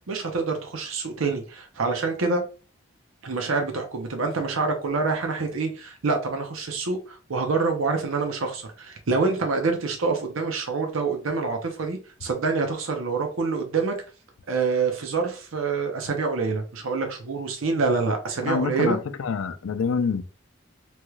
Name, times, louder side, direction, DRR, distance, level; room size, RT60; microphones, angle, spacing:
voice 1, 0.0-2.4 3.2-14.0 14.5-19.0, right 4 dB, 90° right, 0.7 m, -26 dB
voice 2, 18.4-20.2, left 5 dB, 90° left, 0.4 m, -26 dB
3.0 x 3.0 x 2.3 m
head